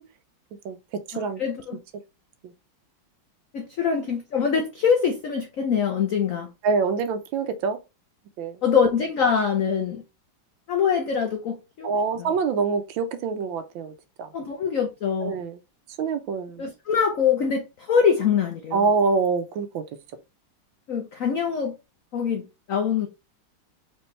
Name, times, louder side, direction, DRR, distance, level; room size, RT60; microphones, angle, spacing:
voice 1, 0.6-1.4 6.6-7.8 8.4-8.6 11.8-13.9 14.2-14.3 15.2-15.6 16.0-16.6 18.7-19.8, right 5 dB, 70° right, 1.4 m, -25 dB
voice 2, 1.4-1.8 3.5-6.5 8.6-10.0 10.7-11.9 12.2-12.3 14.3-15.3 16.6-18.8 20.9-21.8 22.1-23.1, left 6 dB, 80° left, 0.7 m, -24 dB
4.4 x 3.7 x 3.2 m
omnidirectional pair, 2.3 m